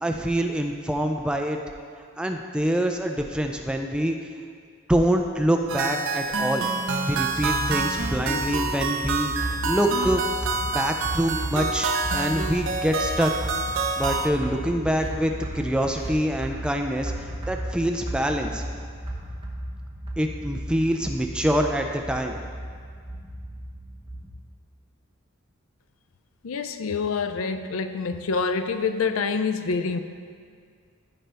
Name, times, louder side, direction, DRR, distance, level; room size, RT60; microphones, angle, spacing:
voice 1, 0.0-1.6 2.2-4.2 4.9-6.7 7.0-13.3 14.0-18.6 20.2-22.4, equal, 5° right, 3 dB, 0.3 m, -25 dB
sound 1, 5.7-14.3, right 3 dB, 60° right, 0.6 m, -27 dB
sound 2, 7.1-24.3, right 1 dB, 25° right, 1.0 m, -35 dB
voice 2, 26.4-30.0, left 4 dB, 70° left, 10 dB, 0.4 m, -26 dB
14.5 x 5.2 x 3.4 m, 2.1 s
head